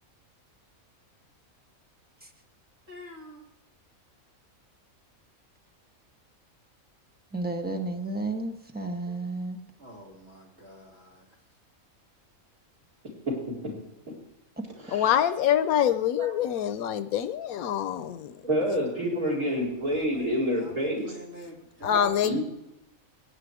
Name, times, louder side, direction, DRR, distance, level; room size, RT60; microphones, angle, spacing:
voice 1, 2.9-3.4 9.8-11.2 18.9-22.4, left 1 dB, 50° right, -1 dB, 3.1 m, -48 dB
voice 2, 7.3-9.6, right 2 dB, 5° right, 3 dB, 1.2 m, -32 dB
voice 3, 14.9-18.3 21.8-22.4, left 10 dB, 90° left, 12 dB, 1.1 m, -25 dB
voice 4, 18.4-21.2 21.9-22.4, equal, 90° right, -1 dB, 4.9 m, -28 dB
16.5 x 9.7 x 4.9 m, 0.91 s
omnidirectional pair, 1.5 m